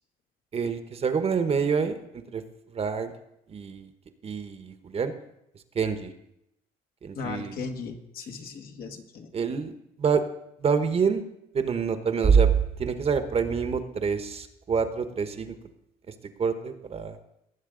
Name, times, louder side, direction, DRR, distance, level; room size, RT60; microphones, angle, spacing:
voice 1, 0.5-3.1 3.5-3.9 4.2-5.1 5.7-6.1 7.0-7.7 9.3-10.2 10.6-11.2 11.5-15.6 16.1-17.2, right 6 dB, 35° right, 8 dB, 1.1 m, -26 dB
voice 2, 7.1-9.3, left 4 dB, 60° left, 4 dB, 1.7 m, -37 dB
19.0 x 8.0 x 3.8 m, 0.82 s
cardioid pair, 110°, 17 cm